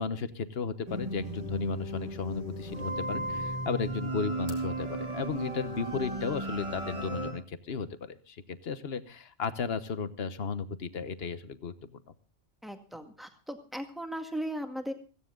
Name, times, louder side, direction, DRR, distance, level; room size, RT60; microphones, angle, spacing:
voice 1, 0.0-12.1, left 5 dB, 50° left, 12 dB, 1.3 m, -34 dB
sound 1, 0.9-7.3, right 2 dB, 25° right, 4.0 m, -35 dB
voice 2, 12.6-14.9, equal, ahead, 5 dB, 1.8 m, -37 dB
17.0 x 16.0 x 3.8 m, 0.34 s
omnidirectional pair, 1.4 m